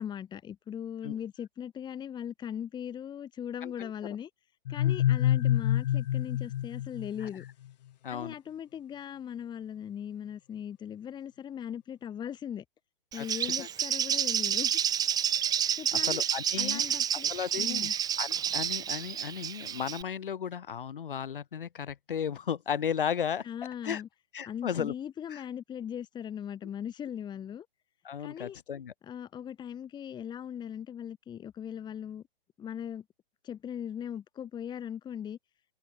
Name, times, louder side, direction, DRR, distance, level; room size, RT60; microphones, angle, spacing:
voice 1, 0.0-4.3 4.7-7.4 8.1-12.6 13.1-14.7 15.4-15.5 15.8-16.2 16.6-17.9 23.4-24.1 24.4-27.7 28.2-28.6 29.0-32.2 32.6-33.0 33.4-35.4, left 9 dB, 15° left, 1.9 m, -39 dB
sound 1, 4.7-7.5, left 12 dB, 50° left, 0.5 m, -27 dB
voice 2, 8.0-8.3 13.2-13.7 15.7-16.8 17.1-17.9 18.2-23.4 23.8-24.0 24.3-24.9 25.3-25.4 28.0-28.9, left 8 dB, 65° left, 3.4 m, -35 dB
Bird, 13.1-20.0, right 9 dB, 15° right, 1.0 m, -29 dB
figure-of-eight pair, 120°, 29 cm